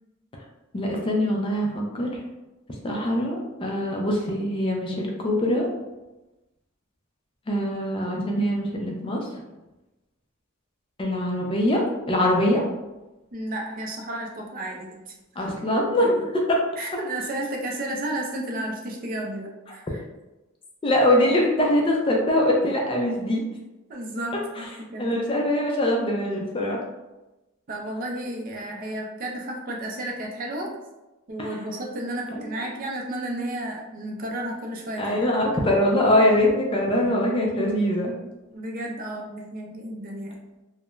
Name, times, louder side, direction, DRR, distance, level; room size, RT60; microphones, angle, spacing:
voice 1, 0.7-2.1 2.8-5.7 7.5-9.3 11.0-11.8 12.1-12.6 15.4-16.6 20.8-23.4 25.0-26.8 31.4-31.5 32.4-32.5 35.0-38.1, left 1 dB, 25° left, -1 dB, 0.3 m, -23 dB
voice 2, 13.3-15.5 16.8-20.0 23.9-25.1 27.7-30.7 31.3-35.2 38.5-40.4, right 1 dB, 40° right, -1 dB, 0.4 m, -32 dB
2.3 x 2.1 x 3.0 m, 1.0 s
head